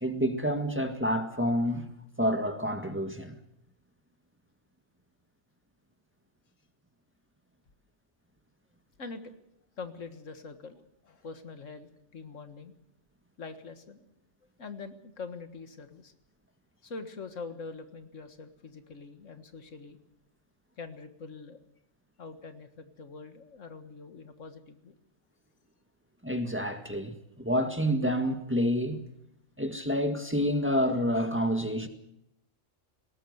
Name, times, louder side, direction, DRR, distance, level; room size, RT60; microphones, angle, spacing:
voice 1, 0.0-1.9 2.2-3.4 26.2-29.0 29.6-31.9, equal, 10° right, 1.7 m, -28 dB
voice 2, 9.8-12.7 13.4-14.1 14.6-16.1 16.8-20.0 20.8-21.6 22.2-25.0, left 4 dB, 85° left, 2.0 m, -44 dB
20.0 x 18.5 x 8.0 m
omnidirectional pair, 1.3 m